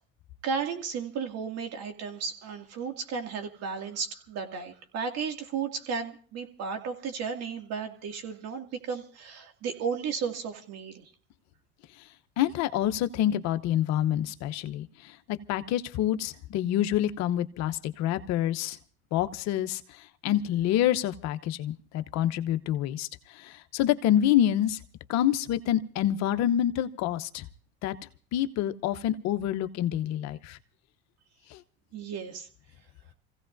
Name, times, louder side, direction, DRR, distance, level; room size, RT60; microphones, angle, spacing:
voice 1, 0.4-11.0 31.9-32.5, right 6 dB, 55° right, 4 dB, 2.4 m, -34 dB
voice 2, 12.4-18.8 19.1-23.1 23.3-24.8 25.1-27.5 27.8-28.0 28.3-30.6 31.5-31.6, left 11 dB, 60° left, 10 dB, 1.0 m, -27 dB
27.5 x 16.0 x 2.7 m, 0.41 s
supercardioid pair, 90°, 30 cm